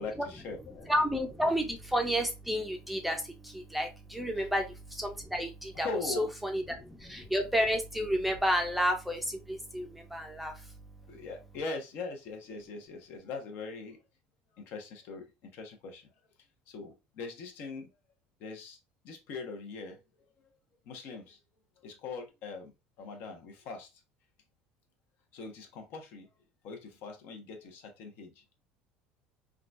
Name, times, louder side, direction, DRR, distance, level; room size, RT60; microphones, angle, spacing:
voice 1, 0.0-0.9 4.4-4.5 5.8-6.3 11.1-14.0 14.6-16.1 16.7-17.9 18.4-18.8 19.0-20.0 20.9-21.4 21.8-22.7 23.0-23.9 25.3-26.3 26.6-28.4, left 4 dB, 60° left, 4 dB, 0.9 m, -41 dB
voice 2, 0.9-11.2, equal, ahead, 3 dB, 0.5 m, -31 dB
3.7 x 2.3 x 2.5 m, 0.26 s
cardioid pair, 135°, 4 cm